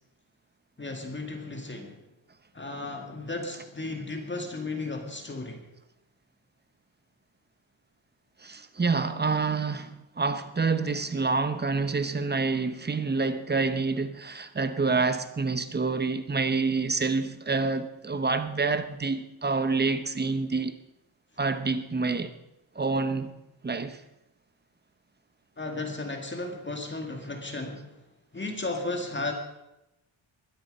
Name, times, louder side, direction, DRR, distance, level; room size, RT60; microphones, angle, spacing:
voice 1, 0.8-2.0 2.5-5.7 25.6-28.0 28.3-29.3, left 2 dB, 20° left, 2.1 m, -34 dB
voice 2, 8.4-20.7 21.4-22.3 22.7-23.3 23.6-24.0, right 4 dB, 20° right, 1.0 m, -27 dB
21.0 x 12.5 x 5.4 m
wide cardioid pair, 160°, 49 cm